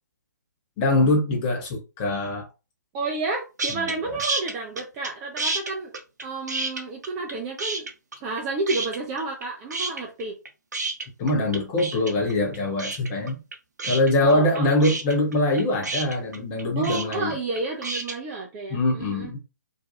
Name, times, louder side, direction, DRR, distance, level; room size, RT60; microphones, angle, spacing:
voice 1, 0.8-2.5 3.7-4.2 11.2-13.4 13.8-17.4 18.7-19.4, left 2 dB, 20° left, 1 dB, 0.8 m, -23 dB
voice 2, 2.9-5.9 6.2-7.9 8.2-10.4 14.2-14.7 16.8-19.3, right 3 dB, 15° right, 0 dB, 0.3 m, -31 dB
sound 1, 3.6-3.9 4.2-5.1 5.4-7.3 7.6-8.4 8.7-9.4 9.7-18.2, right 3 dB, 65° right, 0.6 m, -30 dB
2.5 x 2.2 x 2.7 m, 0.29 s
figure-of-eight pair, 135°, 10 cm